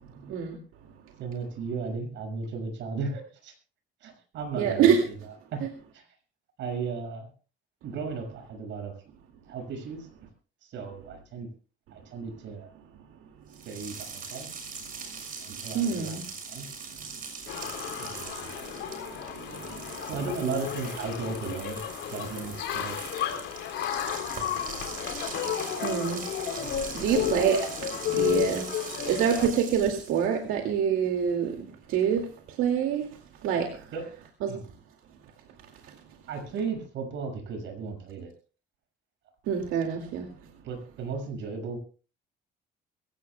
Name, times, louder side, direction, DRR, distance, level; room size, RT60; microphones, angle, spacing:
voice 1, 1.2-3.5 4.0-5.2 5.5-5.7 5.9-6.1 6.6-7.3 7.8-8.9 9.5-10.1 10.6-11.5 11.9-12.7 13.6-14.5 15.4-16.2 16.5-16.7 17.8-18.6 20.0-23.1 24.2-25.1 25.7-25.8 26.1-26.3 26.6-26.7 27.1-27.5 33.9-34.1 34.5-34.7 36.3-38.3 40.6-41.8, right 5 dB, 65° right, 5 dB, 6.2 m, -36 dB
voice 2, 4.5-5.0 15.7-16.2 25.8-26.2 26.9-27.6 28.2-28.6 29.1-31.5 31.9-32.2 32.6-33.1 33.4-33.7 34.4-34.5 39.5-40.2, right 8 dB, 90° right, 3 dB, 2.4 m, -25 dB
sound 1, 13.5-30.3, right 5 dB, 45° right, 6.6 m, -41 dB
sound 2, 17.5-29.5, left 10 dB, 70° left, 3.6 m, -33 dB
23.0 x 17.0 x 2.3 m, 0.38 s
cardioid pair, 155°, 21 cm